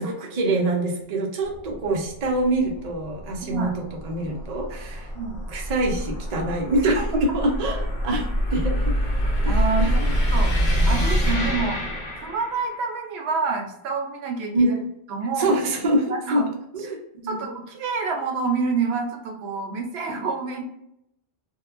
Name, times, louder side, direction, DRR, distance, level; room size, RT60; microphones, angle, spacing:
voice 1, 0.0-3.7 4.0-5.1 5.5-7.0 7.3-8.9 9.4-9.9 14.5-14.8 15.4-16.4 16.7-17.0 17.2-17.4, right 1 dB, 45° right, 0 dB, 0.6 m, -25 dB
sound 1, 1.5-12.8, equal, 70° left, 1.1 m, -26 dB
voice 2, 3.4-3.7 5.1-5.4 6.8-7.0 9.5-10.0 10.3-10.5 10.9-11.8 12.2-14.7 15.1-15.6 16.1-16.5 17.2-20.6, right 4 dB, 80° right, 3 dB, 0.8 m, -27 dB
2.7 x 2.1 x 2.4 m, 0.79 s
omnidirectional pair, 1.1 m